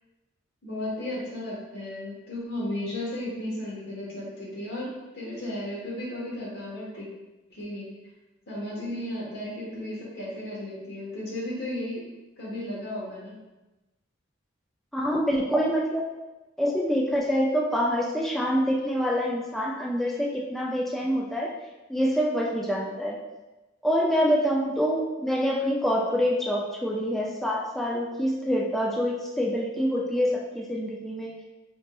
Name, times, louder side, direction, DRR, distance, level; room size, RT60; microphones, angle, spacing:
voice 1, 0.6-7.1 7.5-7.9 8.5-12.1 12.4-13.4 24.6-24.7, left 1 dB, 55° left, -5 dB, 1.2 m, -34 dB
voice 2, 14.9-16.1 16.6-21.5 21.9-23.2 23.8-31.4, equal, ahead, -3 dB, 0.3 m, -26 dB
3.6 x 3.6 x 2.3 m, 1.1 s
head